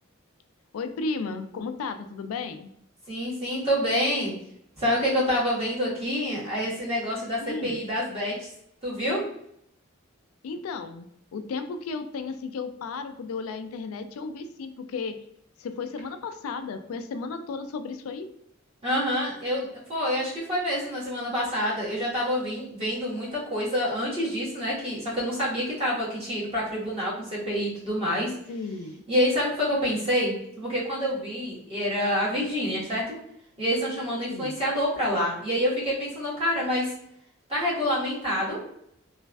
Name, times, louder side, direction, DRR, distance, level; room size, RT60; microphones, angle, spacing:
voice 1, 0.7-2.7 7.4-7.8 10.4-15.2 15.6-18.3 28.5-29.0 34.3-34.5, left 4 dB, 85° left, 8 dB, 0.3 m, -34 dB
voice 2, 3.1-4.3 4.8-8.5 8.8-9.2 18.8-28.3 29.1-33.1 33.6-36.9 37.5-38.6, equal, 30° right, -8 dB, 1.4 m, -27 dB
3.1 x 2.4 x 2.3 m, 0.72 s
head